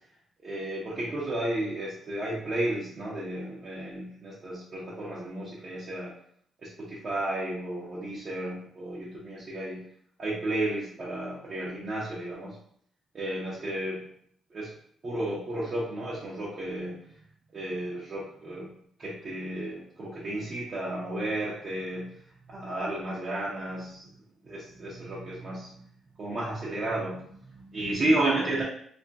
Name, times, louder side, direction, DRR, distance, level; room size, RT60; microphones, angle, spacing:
voice 1, 0.4-6.1 6.6-9.9 10.2-12.6 13.1-14.1 14.5-14.7 15.0-17.2 17.5-18.7 19.0-24.2 24.4-28.6, right 1 dB, 40° right, -7 dB, 0.7 m, -33 dB
2.4 x 2.1 x 3.4 m, 0.63 s
cardioid pair, 120°, 0 cm